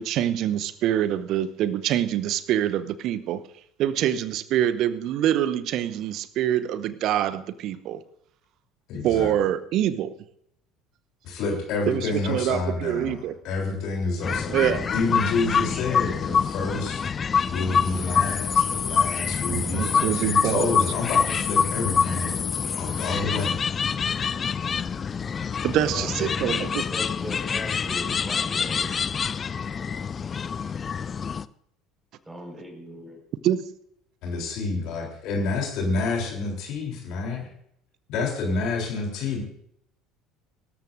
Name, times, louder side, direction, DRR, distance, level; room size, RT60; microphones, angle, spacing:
voice 1, 0.0-3.4 3.8-8.0 9.0-10.1 11.9-13.3 14.5-14.9 19.5-20.7 25.6-26.8 33.4-33.6, right 11 dB, 50° right, 16 dB, 0.8 m, -25 dB
voice 2, 8.9-9.3 11.2-14.5 14.9-17.1 17.5-22.5 22.8-23.6 34.2-37.5 38.1-39.4, left 3 dB, 55° left, 0 dB, 3.5 m, -28 dB
sound 1, 14.2-31.5, left 6 dB, 30° left, 0.4 m, -26 dB
voice 3, 25.8-29.1 32.3-33.2, equal, 10° right, 2 dB, 5.3 m, -39 dB
23.5 x 13.5 x 2.6 m, 0.72 s
figure-of-eight pair, 65°, 0 cm